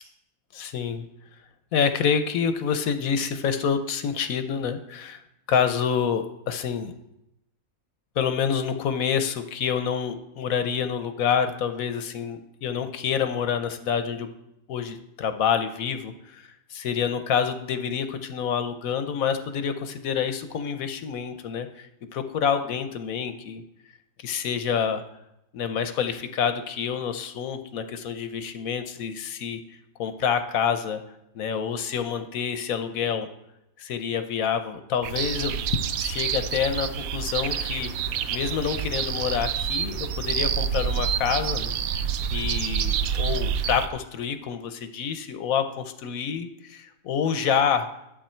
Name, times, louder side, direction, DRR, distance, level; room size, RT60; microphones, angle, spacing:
voice 1, 0.5-1.1 1.7-5.2 5.5-6.9 8.2-14.3 14.7-23.6 24.2-25.0 25.5-29.6 30.0-31.0 31.3-33.3 33.8-37.9 38.3-41.8 42.3-47.9, left 7 dB, 80° left, 9 dB, 1.2 m, -27 dB
sound 1, 35.0-43.9, right 8 dB, 80° right, 1.0 m, -28 dB
11.5 x 7.6 x 4.4 m, 0.86 s
omnidirectional pair, 1.5 m